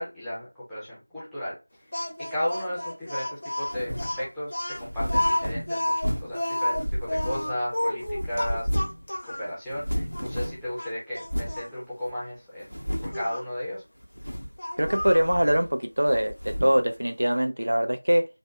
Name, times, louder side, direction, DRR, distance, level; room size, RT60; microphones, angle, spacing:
voice 1, 0.0-1.6 2.2-8.7 9.2-12.7 13.0-13.8, left 1 dB, ahead, 0.7 m, -34 dB
Speech, 1.9-9.5 10.1-10.3 10.8-11.7 13.1-13.4 14.6-15.3, left 1 dB, 35° left, 0.7 m, -30 dB
sound 1, 3.7-4.2 4.8-6.4 6.7-7.7 8.0-9.1 9.3-9.4 9.7-10.7 11.3-11.6 12.1-12.2 12.6-13.3 14.0-14.6 14.8-15.7 16.1-16.9, equal, 85° left, 0.7 m, -32 dB
voice 2, 14.8-18.3, equal, 60° right, 0.5 m, -23 dB
2.5 x 2.3 x 3.4 m
figure-of-eight pair, 175°, 0 cm